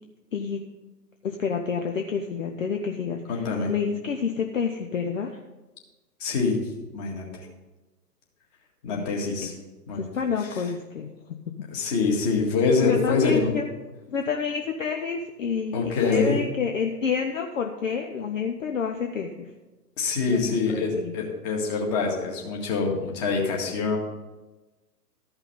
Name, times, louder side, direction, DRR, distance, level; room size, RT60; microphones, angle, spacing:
voice 1, 1.2-5.4 8.9-9.1 9.4-9.5 10.0-11.1 11.4-11.5 12.8-13.6 14.1-19.5 20.3-21.1, left 6 dB, 50° left, 4 dB, 0.9 m, -29 dB
voice 2, 3.3-3.7 6.2-6.6 6.9-7.4 8.8-9.5 9.9-10.0 11.7-13.5 15.7-16.4 20.0-24.0, left 4 dB, 25° left, 0 dB, 1.9 m, -25 dB
13.0 x 5.7 x 5.4 m, 1.2 s
figure-of-eight pair, 125°, 49 cm